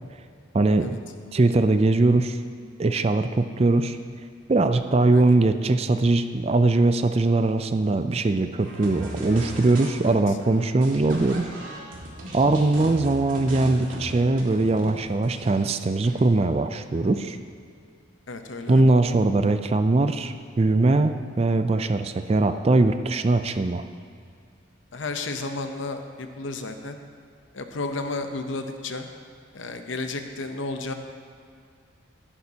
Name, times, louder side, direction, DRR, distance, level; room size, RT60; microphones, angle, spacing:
voice 1, 0.5-1.0 1.3-2.4 2.8-4.0 4.5-11.5 12.3-17.4 18.7-23.8, right 2 dB, 30° right, 9 dB, 0.4 m, -21 dB
sound 1, 8.6-10.1 10.4-16.3, right 1 dB, 80° right, 2.3 m, -37 dB
voice 2, 18.3-18.8 24.9-27.0 27.5-29.0 29.5-30.9, left 3 dB, 70° left, 6 dB, 0.8 m, -32 dB
13.5 x 11.0 x 2.9 m, 2.3 s
head